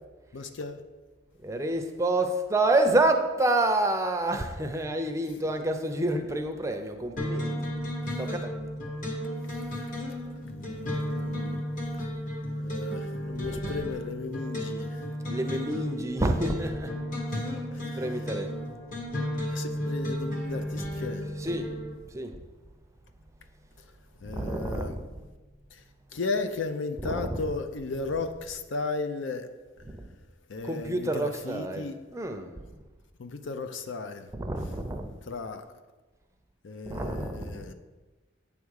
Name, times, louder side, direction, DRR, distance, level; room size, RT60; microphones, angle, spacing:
voice 1, 0.3-0.8 10.4-11.6 12.6-15.1 17.7-18.0 19.5-21.3 24.2-25.0 25.7-25.8 26.1-29.5 30.5-32.0 33.2-34.3 35.2-35.7 36.6-37.7, left 3 dB, 75° left, 0.6 m, -35 dB
voice 2, 1.4-7.7 8.2-8.5 13.4-13.8 15.3-16.9 18.0-18.5 20.8-20.9 21.4-21.7 22.1-22.3 24.3-25.1 27.0-27.5 29.8-30.0 30.6-32.5 34.3-35.2 36.9-37.7, right 2 dB, 15° right, 0.5 m, -28 dB
sound 1, 7.2-21.9, equal, 45° left, 1.4 m, -33 dB
8.6 x 3.5 x 6.4 m
head